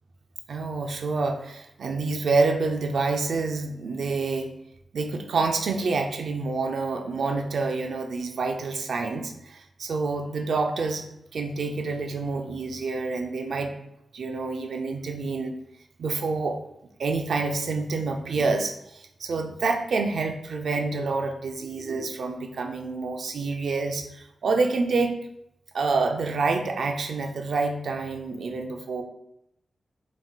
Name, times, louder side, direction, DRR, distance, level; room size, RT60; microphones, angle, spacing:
voice 1, 0.5-4.5 4.9-11.1 11.3-13.8 14.1-15.5 16.0-16.6 17.0-25.2 25.7-29.0, right 3 dB, 80° right, 4 dB, 0.5 m, -27 dB
4.5 x 4.1 x 2.4 m, 0.79 s
wide cardioid pair, 105°, 0 cm